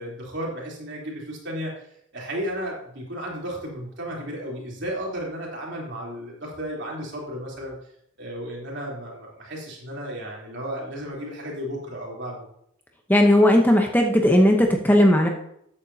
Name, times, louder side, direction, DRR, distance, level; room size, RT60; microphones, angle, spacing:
voice 1, 0.0-1.7 2.1-7.8 8.2-12.5, equal, 60° right, -3 dB, 3.5 m, -33 dB
voice 2, 13.1-15.3, left 1 dB, 10° left, 2 dB, 0.8 m, -17 dB
13.5 x 8.9 x 2.8 m, 0.73 s
head